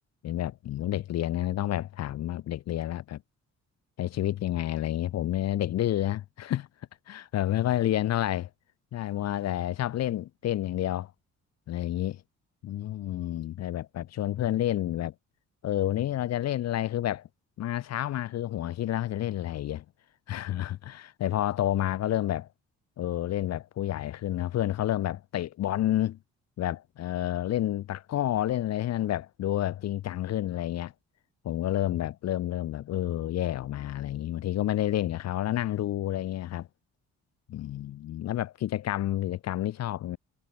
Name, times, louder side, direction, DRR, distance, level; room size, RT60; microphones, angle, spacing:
voice 1, 0.2-3.2 4.0-6.7 7.1-8.5 8.9-11.1 11.7-12.2 12.6-15.1 15.6-17.3 17.6-19.8 20.3-22.5 23.0-26.2 26.6-30.9 31.4-36.7 37.5-40.2, left 13 dB, 60° left, 0.6 m, -29 dB
cardioid pair, 90°, 30 cm